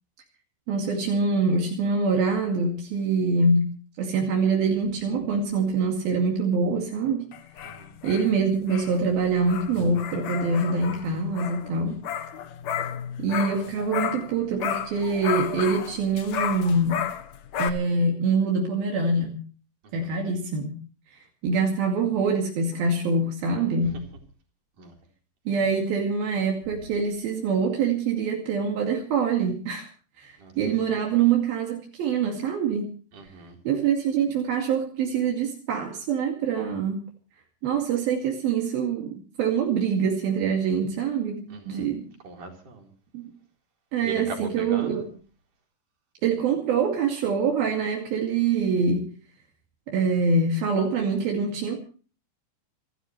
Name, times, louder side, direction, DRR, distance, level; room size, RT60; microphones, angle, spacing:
voice 1, 0.7-7.3 8.0-12.0 13.2-17.1 17.6-19.4 19.9-20.8 21.1-24.0 25.5-29.9 30.2-32.9 33.7-37.0 37.6-42.1 43.1-43.3 43.9-45.1 46.2-49.1 49.9-51.8, right 4 dB, 80° right, 1 dB, 4.2 m, -25 dB
sound 1, 7.3-14.3 14.6-17.7, left 9 dB, 60° left, 2.1 m, -33 dB
voice 2, 33.1-33.6 41.5-41.9 42.2-42.9 44.0-45.0, right 4 dB, 60° right, 1 dB, 5.7 m, -39 dB
28.0 x 13.5 x 3.2 m, 0.39 s
omnidirectional pair, 4.2 m